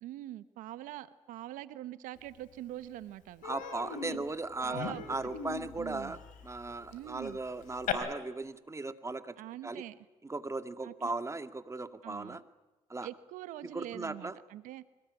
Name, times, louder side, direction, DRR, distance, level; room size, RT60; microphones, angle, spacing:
voice 1, 0.0-3.4 4.1-4.2 4.6-5.0 5.8-6.2 6.9-7.4 9.4-10.0 10.8-11.1 12.0-12.4 13.0-14.8, right 14 dB, 80° right, 15 dB, 1.0 m, -44 dB
Human voice, 2.4-2.5 2.8-3.0 3.4-7.9, left 8 dB, 75° left, 3.8 m, -40 dB
voice 2, 3.4-9.4 9.6-9.8 10.2-12.4 12.9-13.1 13.7-14.4, right 3 dB, 20° right, 10 dB, 2.0 m, -37 dB
25.0 x 19.0 x 9.7 m, 1.1 s
supercardioid pair, 60°, 13 cm